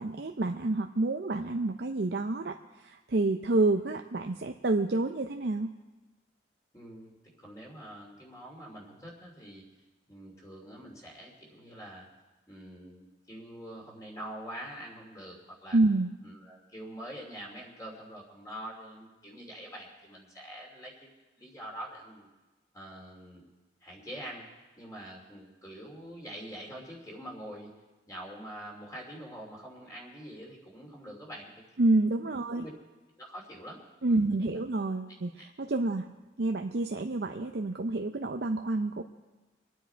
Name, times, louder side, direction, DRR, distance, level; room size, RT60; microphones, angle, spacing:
voice 1, 0.0-5.7 15.7-16.1 31.8-32.6 34.0-36.1 36.4-39.0, right 2 dB, 60° right, 4 dB, 0.6 m, -28 dB
voice 2, 6.7-7.1 7.4-9.6 10.1-12.0 12.5-15.8 16.2-22.3 22.7-23.5 23.8-24.5 24.8-27.7 28.1-31.6 32.2-32.7 33.2-33.8 34.1-34.7 35.4-35.5, right 1 dB, 20° left, -2 dB, 2.8 m, -45 dB
24.0 x 9.4 x 4.5 m, 1.1 s
head